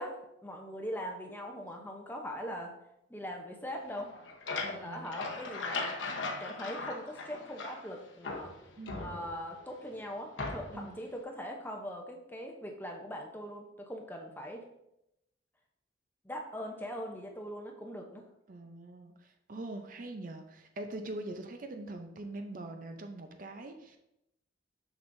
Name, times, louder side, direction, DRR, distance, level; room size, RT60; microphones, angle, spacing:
voice 1, 0.0-2.7 3.1-4.1 4.6-6.0 6.4-8.5 9.0-14.6 16.2-18.2, equal, 10° left, 2 dB, 0.7 m, -41 dB
sound 1, 4.0-7.9 8.2-9.6 10.4-10.9, left 3 dB, 85° left, 0.9 m, -38 dB
voice 2, 4.6-5.1 8.8-9.1 10.7-11.0 18.5-24.0, right 2 dB, 45° right, 5 dB, 0.6 m, -43 dB
6.7 x 6.1 x 2.6 m, 0.84 s
head